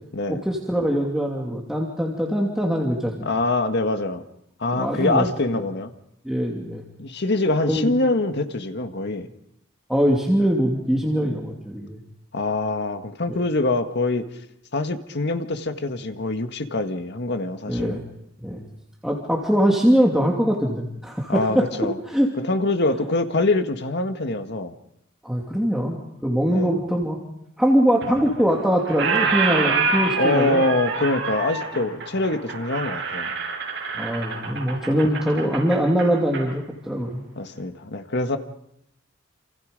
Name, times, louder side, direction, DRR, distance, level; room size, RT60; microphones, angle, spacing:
voice 1, 0.4-3.3 4.7-5.2 5.5-5.6 6.2-6.8 7.7-7.9 9.9-12.0 13.3-13.4 17.7-18.0 18.4-18.6 19.0-21.7 22.1-22.3 25.2-27.2 27.6-30.6 33.9-37.2, equal, ahead, -2 dB, 2.7 m, -22 dB
voice 2, 3.2-4.2 4.6-5.9 7.0-9.3 12.3-14.3 14.7-18.0 21.3-22.0 22.5-24.7 26.5-26.8 30.2-33.3 37.4-38.4, left 2 dB, 55° left, 7 dB, 1.7 m, -24 dB
Squeak, 28.0-28.6 28.8-36.5, right 4 dB, 60° right, 7.4 m, -26 dB
28.5 x 28.0 x 5.3 m, 0.79 s
head